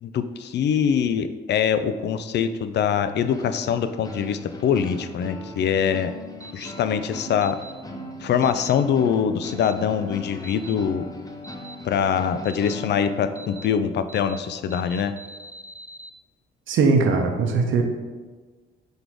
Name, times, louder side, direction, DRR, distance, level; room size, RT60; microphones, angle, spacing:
voice 1, 0.0-6.1 6.5-7.6 8.2-11.1 11.8-15.1, left 7 dB, 60° left, 11 dB, 0.4 m, -23 dB
sound 1, 3.2-14.0, left 2 dB, 20° left, 0.8 m, -39 dB
sound 2, 6.4-6.7 7.4-7.7 8.4-8.7 9.4-9.7 10.4-10.7 11.4-11.8 12.4-12.8 13.4-13.7 14.1-14.4 14.7-16.1, right 3 dB, 10° right, 0.5 m, -42 dB
voice 2, 16.7-17.8, right 4 dB, 75° right, 4 dB, 0.9 m, -20 dB
5.1 x 4.1 x 4.6 m, 1.3 s
cardioid pair, 90°, 20 cm